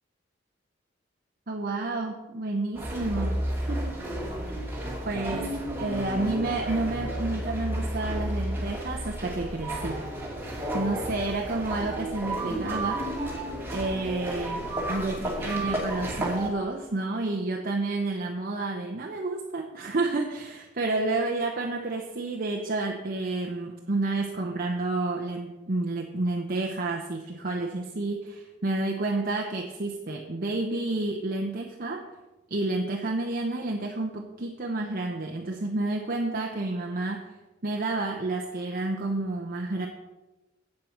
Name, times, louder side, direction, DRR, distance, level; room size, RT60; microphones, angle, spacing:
voice 1, 1.5-4.0 4.4-4.7 5.0-5.5 5.8-10.0 10.7-32.0 32.5-37.3 37.6-39.9, right 2 dB, 50° right, 2 dB, 0.9 m, -30 dB
sound 1, 2.7-16.5, right 1 dB, 10° right, 2.3 m, -32 dB
8.5 x 7.6 x 6.4 m, 1.1 s
head